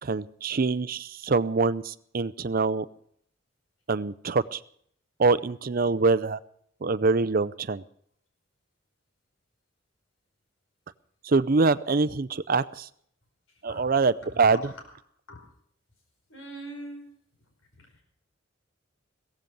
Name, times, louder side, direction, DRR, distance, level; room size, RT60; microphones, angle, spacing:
voice 1, 0.0-2.9 3.9-4.6 5.2-6.4 6.8-7.8 11.2-12.9 13.6-14.6, right 4 dB, 45° right, 16 dB, 0.5 m, -24 dB
voice 2, 14.2-14.8 15.3-15.5 16.3-17.1 17.8-18.0, right 1 dB, 85° left, 3 dB, 5.1 m, -43 dB
16.5 x 15.0 x 5.3 m, 0.63 s
head